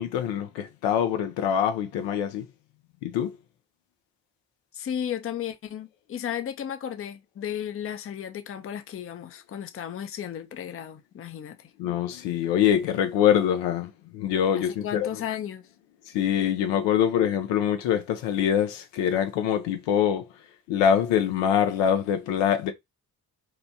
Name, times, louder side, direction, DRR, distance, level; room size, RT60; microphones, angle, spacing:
voice 1, 0.0-2.5 3.0-3.3 11.8-15.1 16.1-20.2 20.7-22.7, left 9 dB, 70° left, 0.6 m, -24 dB
voice 2, 4.7-11.7 14.5-15.6, left 9 dB, 30° left, 0.5 m, -34 dB
2.9 x 2.1 x 2.6 m
hypercardioid pair, 40°, 45 cm